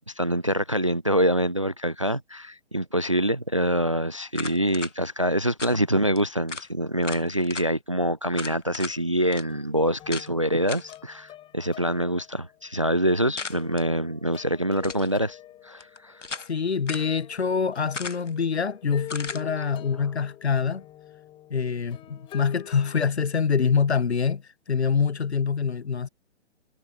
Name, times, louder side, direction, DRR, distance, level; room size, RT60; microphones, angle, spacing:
voice 1, 0.2-15.4 15.6-16.2, equal, 30° right, 0.3 m, -25 dB
sound 1, 4.3-4.9 5.6-5.8 6.2-6.3 6.5-6.7 7.0-7.7 8.3-9.0 9.3-9.4 10.1-10.3 10.7-11.0 13.4-13.8 14.7-15.1 15.8-16.5 16.9-17.1 17.9-18.4 19.1-19.4, left 4 dB, 75° left, 1.2 m, -36 dB
sound 2, 8.9-9.1 9.4-12.6 13.1-23.0, left 13 dB, 15° left, 6.2 m, -46 dB
voice 2, 16.5-20.8 21.5-24.4 24.7-26.1, left 6 dB, 60° left, 1.3 m, -25 dB
figure-of-eight pair, 135°, 36 cm